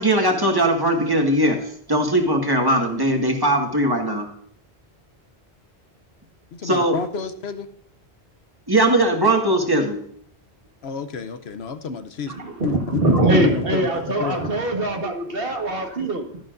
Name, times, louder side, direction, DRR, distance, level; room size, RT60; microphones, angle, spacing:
voice 1, 0.0-4.3 6.6-7.0 8.7-10.0 15.0-15.1, right 1 dB, 20° right, 1.7 m, -20 dB
voice 2, 6.5-7.7 10.8-12.3 12.6-14.4, left 5 dB, 70° left, 1.0 m, -29 dB
voice 3, 12.3-16.4, right 1 dB, 60° right, 1.8 m, -22 dB
12.0 x 11.0 x 2.6 m
omnidirectional pair, 1.1 m